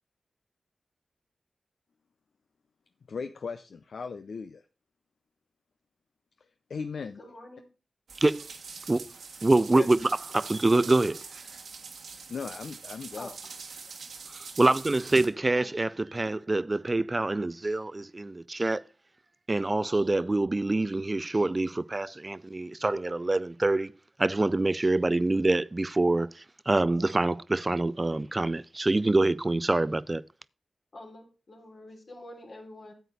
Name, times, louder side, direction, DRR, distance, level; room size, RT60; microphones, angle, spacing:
voice 1, 3.1-4.6 6.7-7.2 9.7-9.9 12.3-13.3, left 5 dB, 75° left, 0.5 m, -37 dB
voice 2, 7.2-7.7 13.1-13.3 15.6-15.7 30.9-32.9, left 1 dB, 60° left, 3.3 m, -46 dB
sound 1, 8.1-15.3, right 5 dB, 90° right, 1.6 m, -44 dB
voice 3, 9.4-11.2 14.6-18.8 19.5-23.9 24.2-30.2, right 2 dB, 35° right, 0.4 m, -25 dB
9.2 x 8.1 x 4.0 m
cardioid pair, 45°, 0 cm